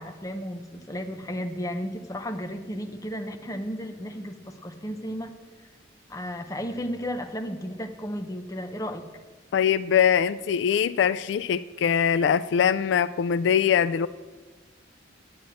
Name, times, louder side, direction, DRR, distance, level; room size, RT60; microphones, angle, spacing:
voice 1, 0.0-5.3 6.1-9.1, equal, 15° left, 5 dB, 0.8 m, -34 dB
voice 2, 9.5-14.1, left 8 dB, 70° left, 15 dB, 0.3 m, -22 dB
10.5 x 8.5 x 7.5 m, 1.3 s
head